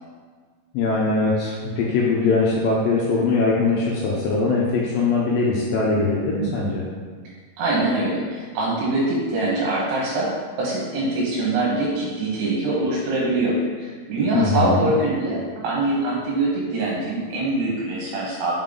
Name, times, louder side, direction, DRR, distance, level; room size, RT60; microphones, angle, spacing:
voice 1, 0.7-6.8 14.3-14.9, left 3 dB, 80° left, -3 dB, 2.1 m, -21 dB
voice 2, 7.6-10.3 10.6-18.6, right 2 dB, 80° right, -5 dB, 3.1 m, -23 dB
5.7 x 5.6 x 3.7 m, 1.5 s
omnidirectional pair, 4.7 m